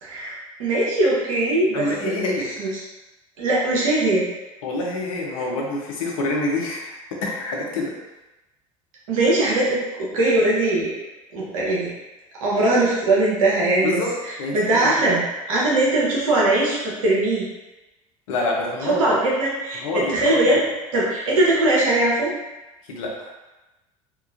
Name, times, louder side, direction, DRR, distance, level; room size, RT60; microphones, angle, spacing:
voice 1, 0.0-2.7 3.4-4.3 9.1-11.0 11.3-11.9 12.3-15.2 15.5-17.5 18.8-19.8 20.1-20.6 20.9-22.3, right 2 dB, 75° right, -5 dB, 0.9 m, -21 dB
voice 2, 1.7-2.7 4.6-7.9 13.8-14.1 14.4-14.5 14.8-15.2 18.3-19.2 19.7-20.4 22.9-23.3, left 2 dB, 70° left, -1 dB, 0.7 m, -27 dB
2.9 x 2.4 x 2.5 m, 1.1 s
hypercardioid pair, 70°, 18 cm